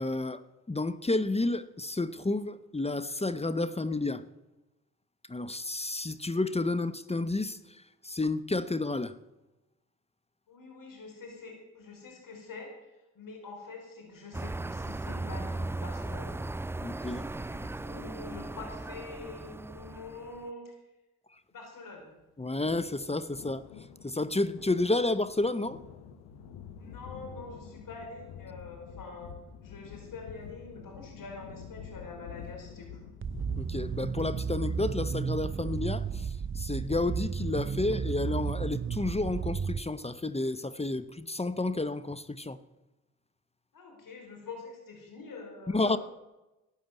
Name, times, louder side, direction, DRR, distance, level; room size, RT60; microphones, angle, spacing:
voice 1, 0.0-4.2 5.3-9.1 16.8-17.2 22.4-23.6 24.0-25.8 33.6-42.6 45.7-46.0, left 2 dB, 15° left, 0.9 m, -31 dB
voice 2, 10.5-16.4 17.0-20.8 21.5-22.1 26.8-29.3 29.6-33.2 43.7-46.0, left 3 dB, 60° left, 4.7 m, -45 dB
sound 1, 14.3-20.4, right 2 dB, 5° right, 0.4 m, -37 dB
sound 2, 22.5-36.4, left 7 dB, 90° left, 0.9 m, -48 dB
sound 3, 33.2-39.8, right 6 dB, 35° right, 0.7 m, -33 dB
12.5 x 9.2 x 8.2 m
hypercardioid pair, 45°, 36 cm